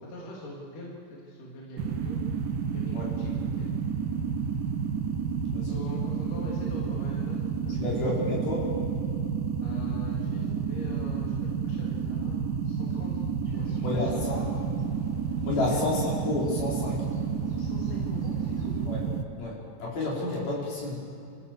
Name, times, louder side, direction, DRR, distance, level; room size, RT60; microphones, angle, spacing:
voice 1, 0.0-2.2 2.7-3.7 5.7-8.1 9.6-13.2 13.5-14.5 15.6-15.8 17.6-18.7, left 1 dB, 65° left, -4 dB, 4.6 m, -43 dB
sound 1, 1.8-19.2, right 6 dB, 75° right, 2.7 m, -30 dB
voice 2, 5.5-5.8 7.7-8.7 13.8-14.4 15.4-17.1 18.9-19.0 19.4-21.0, left 2 dB, 80° left, -5 dB, 6.8 m, -30 dB
sound 2, 13.4-18.9, right 1 dB, 5° left, 5.3 m, -50 dB
29.5 x 15.5 x 6.9 m, 2.7 s
omnidirectional pair, 4.2 m